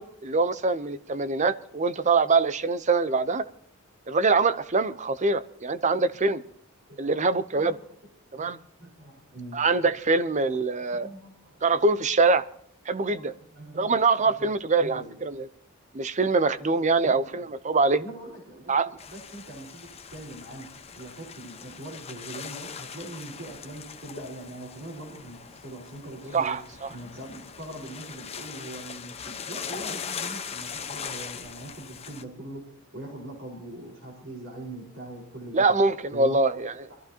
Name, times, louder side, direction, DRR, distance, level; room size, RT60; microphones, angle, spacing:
voice 1, 0.0-3.4 4.1-6.4 7.0-7.8 8.3-8.6 9.5-11.1 11.6-12.4 12.9-13.3 13.7-15.5 15.9-18.0 18.7-18.9 26.3-26.9 35.5-36.7, right 3 dB, 35° right, 14 dB, 0.7 m, -24 dB
voice 2, 8.8-9.6 10.8-11.6 13.1-13.9 14.2-14.5 14.8-15.2 16.8-17.5 18.0-20.7 20.9-26.6 26.9-32.6 32.9-35.6 36.1-36.6 36.9-37.0, right 1 dB, 60° right, -2 dB, 4.8 m, -42 dB
sound 1, 19.0-32.2, left 6 dB, 30° left, 1.0 m, -40 dB
23.0 x 14.5 x 2.9 m, 0.69 s
head